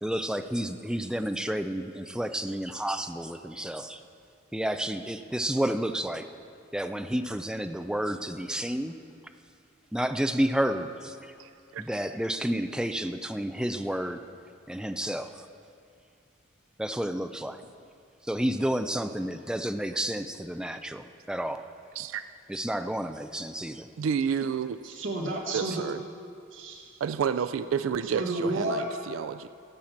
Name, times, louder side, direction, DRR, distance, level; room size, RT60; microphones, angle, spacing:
voice 1, 0.0-4.0 4.5-6.2 6.7-8.9 9.9-11.2 11.8-14.2 14.7-15.5 16.8-17.6 18.3-21.6 22.5-23.9, right 1 dB, 5° right, 8 dB, 0.4 m, -30 dB
voice 2, 11.4-11.8 22.0-22.2 24.0-24.8 25.5-26.0 27.0-29.5, right 7 dB, 85° right, 12 dB, 0.3 m, -30 dB
voice 3, 24.8-25.9 26.5-26.9 28.0-28.9, right 1 dB, 70° right, -1 dB, 1.8 m, -31 dB
15.5 x 5.9 x 7.2 m, 2.4 s
head